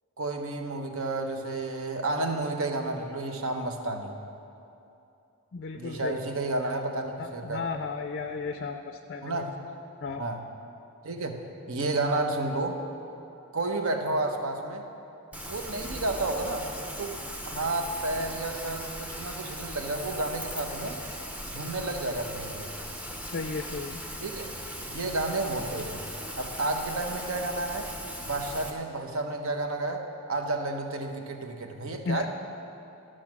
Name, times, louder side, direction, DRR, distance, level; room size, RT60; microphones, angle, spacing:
voice 1, 0.2-4.1 5.7-7.7 9.2-9.6 10.2-10.4 11.0-11.4 11.7-12.8 13.5-14.9 15.5-16.7 17.0-17.2 17.5-21.0 21.4-22.7 24.2-24.5 24.9-26.0 26.4-27.9 28.2-32.3, right 2 dB, 65° right, 5 dB, 0.9 m, -31 dB
voice 2, 5.5-6.2 7.2-9.4 10.0-10.3 23.2-24.0 32.1-32.3, left 4 dB, 45° left, 6 dB, 0.4 m, -34 dB
Rain, 15.3-28.7, equal, 5° right, 0.6 m, -39 dB
12.5 x 6.3 x 6.0 m, 2.8 s
head